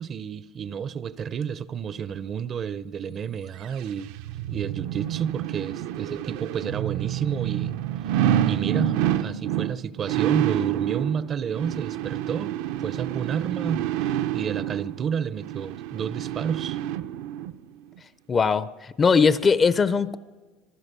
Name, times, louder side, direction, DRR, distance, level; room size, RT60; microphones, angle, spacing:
voice 1, 0.0-4.1 4.5-7.7 8.2-16.8, right 7 dB, 30° right, 17 dB, 0.6 m, -30 dB
sound 1, 3.6-17.5 18.0-18.1, right 12 dB, 75° right, 0.7 m, -28 dB
voice 2, 18.3-20.2, left 5 dB, 20° left, 16 dB, 0.5 m, -20 dB
26.0 x 15.5 x 6.8 m, 1.4 s
cardioid pair, 150°, 0 cm